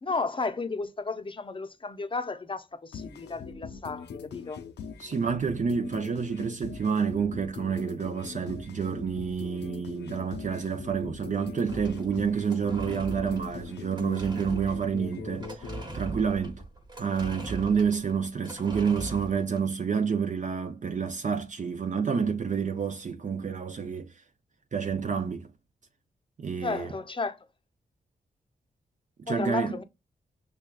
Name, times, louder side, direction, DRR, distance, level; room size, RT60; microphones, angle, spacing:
voice 1, 0.0-4.6 26.6-27.5 29.3-29.8, left 3 dB, 30° left, 0.6 m, -33 dB
sound 1, 2.9-15.8, left 6 dB, 80° left, 0.5 m, -42 dB
voice 2, 5.0-15.7 15.9-16.6 17.0-24.1 24.7-25.5 26.4-26.9 29.2-29.8, right 6 dB, 45° right, 0.5 m, -29 dB
sound 2, 11.7-19.6, right 2 dB, 25° right, 1.2 m, -40 dB
6.0 x 2.3 x 2.2 m
cardioid pair, 50°, 18 cm